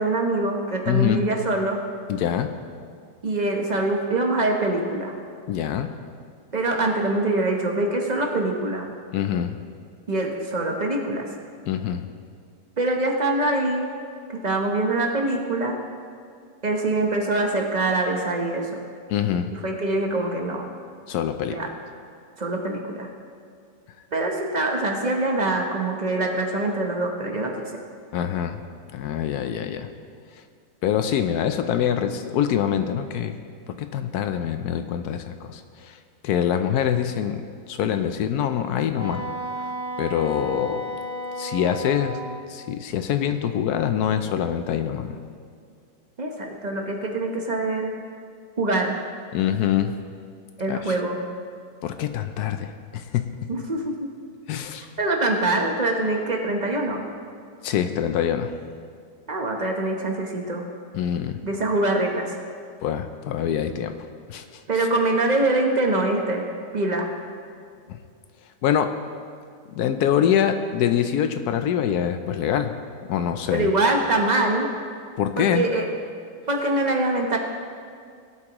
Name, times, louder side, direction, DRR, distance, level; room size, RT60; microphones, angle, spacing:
voice 1, 0.0-1.8 3.2-5.1 6.5-8.9 10.1-11.3 12.8-13.9 14.3-15.8 16.6-18.7 19.5-20.6 21.5-21.7 22.4-23.1 24.1-27.5 46.2-47.9 48.6-49.0 50.6-51.2 53.5-54.1 55.0-57.0 59.3-60.6 61.4-62.4 64.7-66.4 66.7-67.1 73.5-74.7 75.4-75.9 76.5-77.4, right 2 dB, 30° right, 1 dB, 0.9 m, -24 dB
voice 2, 0.9-1.3 2.1-2.5 5.5-5.9 9.1-9.6 11.7-12.1 19.1-19.5 21.1-21.6 28.1-28.6 28.9-29.9 30.8-33.4 33.8-35.9 36.2-37.4 37.7-39.2 40.0-40.8 41.4-42.2 42.5-45.2 49.3-50.0 50.7-50.9 51.8-53.5 54.5-54.9 57.6-58.6 60.9-61.4 62.8-64.0 64.3-64.4 64.7-64.9 67.9-68.0 68.6-69.0 69.7-72.7 73.1-73.7 75.2-75.6, left 9 dB, 75° left, 8 dB, 1.1 m, -24 dB
Wind instrument woodwind instrument, 39.0-42.4, equal, 35° left, 1.8 m, -33 dB
17.5 x 8.3 x 3.0 m, 2.3 s
omnidirectional pair, 1.8 m